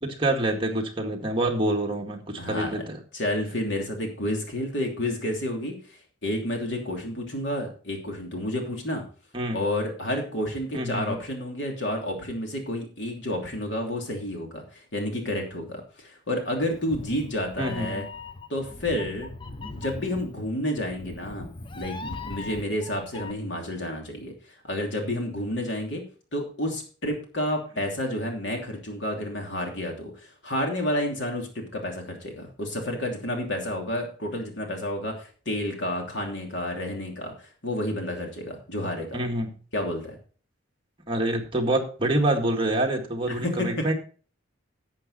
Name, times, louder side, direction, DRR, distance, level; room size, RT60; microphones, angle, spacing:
voice 1, 0.0-3.0 9.3-9.6 10.7-11.2 17.6-18.0 39.1-39.5 41.1-43.9, right 1 dB, 25° right, 1 dB, 1.9 m, -26 dB
voice 2, 2.4-2.9 3.1-9.0 9.5-18.0 18.5-19.3 19.7-21.5 21.7-24.3 24.6-26.0 26.3-39.2 39.7-40.2 43.3-43.8, left 1 dB, 60° left, 2 dB, 3.0 m, -30 dB
Meow, 16.6-23.3, left 3 dB, 25° left, 0.8 m, -40 dB
11.5 x 7.6 x 4.2 m, 0.40 s
head